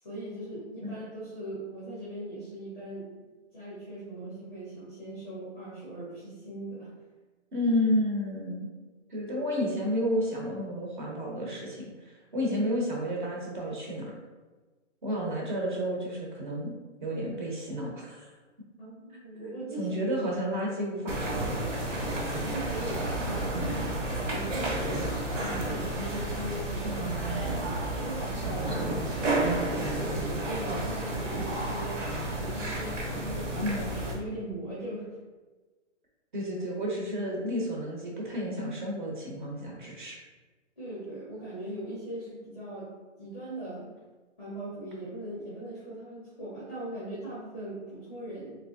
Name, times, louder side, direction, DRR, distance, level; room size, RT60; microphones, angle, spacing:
voice 1, 0.0-3.1 3.5-6.9 18.8-20.2 22.4-23.6 24.1-27.4 27.9-29.0 29.7-32.1 32.4-35.1 40.8-42.9 43.2-43.9 44.4-48.6, right 1 dB, 10° left, -10 dB, 0.6 m, -39 dB
voice 2, 7.5-8.7 9.1-14.2 15.0-16.7 17.0-18.3 19.8-21.6 26.8-27.2 33.6-33.9 36.3-40.2, equal, 40° right, -2 dB, 0.8 m, -31 dB
sound 1, 21.1-34.1, right 1 dB, 75° right, 1.1 m, -31 dB
3.4 x 2.9 x 2.6 m, 1.3 s
hypercardioid pair, 165°, 37 cm